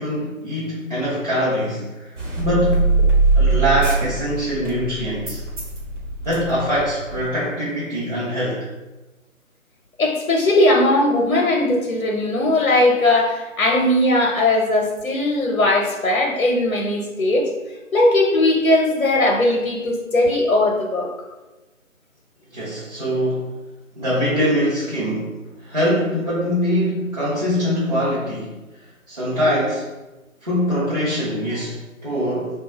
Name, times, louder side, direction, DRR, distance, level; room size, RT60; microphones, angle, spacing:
voice 1, 0.0-2.8 3.3-5.4 6.2-8.7 22.5-23.5 23.9-29.9 30.4-32.6, equal, 30° right, -12 dB, 0.7 m, -23 dB
sound 1, 2.2-7.2, right 3 dB, 60° right, 1.1 m, -21 dB
voice 2, 10.0-17.5 17.9-21.1, left 1 dB, 75° left, 0 dB, 0.7 m, -18 dB
2.6 x 2.3 x 4.0 m, 1.1 s
figure-of-eight pair, 160°, 41 cm